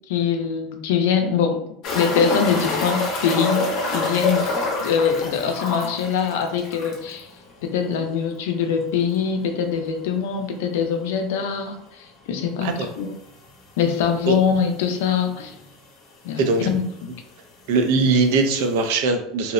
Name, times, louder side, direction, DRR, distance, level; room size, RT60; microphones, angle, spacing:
voice 1, 0.1-1.6 1.9-3.7 3.9-7.3 7.6-13.1 13.8-15.5 16.2-16.8, left 7 dB, 80° left, 5 dB, 0.4 m, -23 dB
sound 1, 1.8-7.2 7.5-7.6 7.9-8.0 10.8-10.9 12.6-12.7 13.5-13.6 13.8-13.9 14.8-14.9 15.1-15.7 16.6-16.7, left 2 dB, 40° left, 0.6 m, -26 dB
voice 2, 16.4-16.7 17.7-19.5, right 3 dB, 65° right, 6 dB, 0.4 m, -20 dB
2.7 x 2.0 x 2.4 m, 0.75 s
cardioid pair, 175°, 0 cm